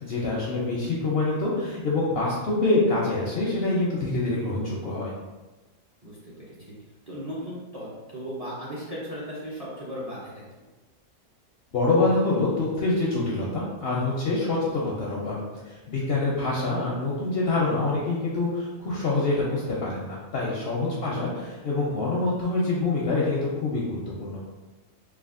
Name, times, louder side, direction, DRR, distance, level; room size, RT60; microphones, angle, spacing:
voice 1, 0.0-5.1 11.7-15.4 15.6-24.4, left 2 dB, 65° left, -4 dB, 0.6 m, -26 dB
voice 2, 0.6-0.9 6.0-6.3 6.7-6.8 7.1-7.9 8.1-10.4 20.8-21.2, equal, 40° right, -8 dB, 0.5 m, -36 dB
3.3 x 2.3 x 2.4 m, 1.2 s
omnidirectional pair, 1.4 m